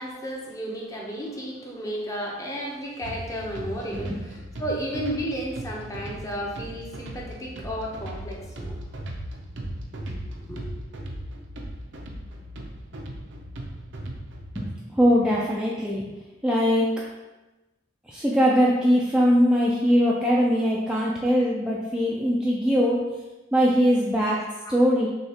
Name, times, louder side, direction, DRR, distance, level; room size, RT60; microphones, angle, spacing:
voice 1, 0.0-8.8 10.1-10.7 24.3-24.7, equal, 20° left, -3 dB, 0.7 m, -33 dB
sound 1, 3.0-14.7, right 1 dB, 75° right, 0.6 m, -37 dB
voice 2, 14.6-16.1 16.4-16.9 18.1-23.0 23.5-24.4 24.7-25.1, equal, 5° right, -5 dB, 0.4 m, -21 dB
6.3 x 2.3 x 2.8 m, 1.1 s
head